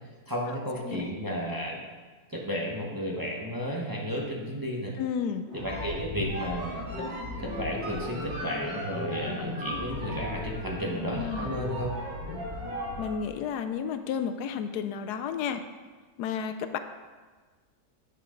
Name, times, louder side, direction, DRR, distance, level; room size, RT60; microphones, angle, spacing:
voice 1, 0.3-1.8 2.3-4.9 5.5-7.1 7.4-11.9, equal, 15° right, -3 dB, 1.0 m, -33 dB
voice 2, 5.0-5.5 11.1-11.5 13.0-15.6 16.2-16.8, left 7 dB, 80° left, 9 dB, 1.1 m, -32 dB
sound 1, 5.4-13.2, left 1 dB, 40° right, 2.5 m, -36 dB
9.0 x 6.5 x 3.8 m, 1.4 s
omnidirectional pair, 1.7 m